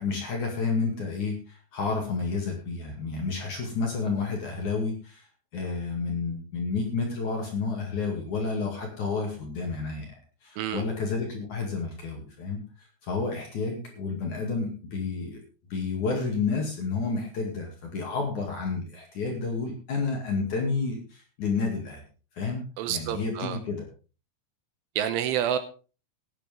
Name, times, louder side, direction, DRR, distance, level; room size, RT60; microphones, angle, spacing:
voice 1, 0.0-5.3 5.5-10.1 10.4-15.4 15.7-22.0 22.3-23.9, left 4 dB, 45° left, 1 dB, 2.9 m, -30 dB
voice 2, 22.8-23.6 25.0-25.6, right 10 dB, 80° right, 11 dB, 3.2 m, -28 dB
16.0 x 10.5 x 3.7 m, 0.36 s
omnidirectional pair, 6.0 m